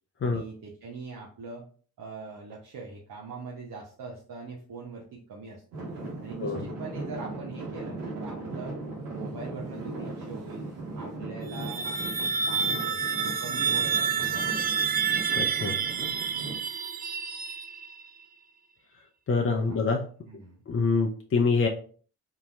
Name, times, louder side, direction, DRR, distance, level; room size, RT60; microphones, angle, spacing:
voice 1, 0.2-1.7 2.0-5.8 6.2-8.8 9.1-10.7 10.9-14.7 19.7-19.8 20.3-20.6, right 3 dB, 60° right, -2 dB, 0.8 m, -42 dB
Traffic noise roadway noise / Engine, 5.7-16.6, right 2 dB, 90° right, 1.3 m, -38 dB
sound 1, 11.4-18.1, right 6 dB, 25° right, 0.3 m, -29 dB
voice 2, 15.4-15.8 19.3-20.0 20.7-21.7, left 4 dB, 35° left, 2 dB, 0.6 m, -25 dB
3.9 x 2.8 x 2.2 m, 0.43 s
supercardioid pair, 50°, 38 cm